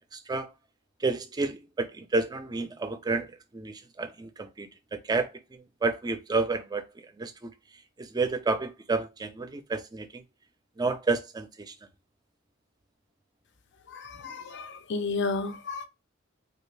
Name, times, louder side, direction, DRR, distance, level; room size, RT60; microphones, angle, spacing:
voice 1, 0.1-0.5 1.0-6.9 7.2-7.5 8.0-10.2 10.8-11.7, right 3 dB, 20° right, 0.4 m, -30 dB
voice 2, 13.9-15.9, left 4 dB, 60° left, 0.5 m, -32 dB
3.1 x 2.4 x 3.2 m
head